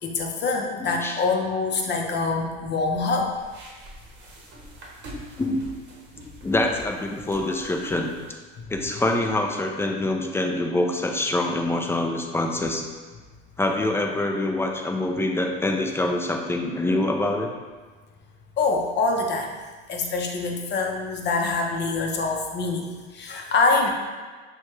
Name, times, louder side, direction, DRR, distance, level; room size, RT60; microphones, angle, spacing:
voice 1, 0.0-3.3 7.4-7.6 8.6-8.7 18.6-19.5 19.9-23.9, left 3 dB, 35° left, 2 dB, 0.7 m, -25 dB
voice 2, 0.8-1.2 5.4-5.6 6.4-8.1 8.7-12.8 13.6-17.5, left 2 dB, 10° left, 2 dB, 0.3 m, -25 dB
sound 1, 2.8-8.3, right 1 dB, 35° right, 1.0 m, -44 dB
6.1 x 2.3 x 3.0 m, 1.4 s
supercardioid pair, 100°, 30 cm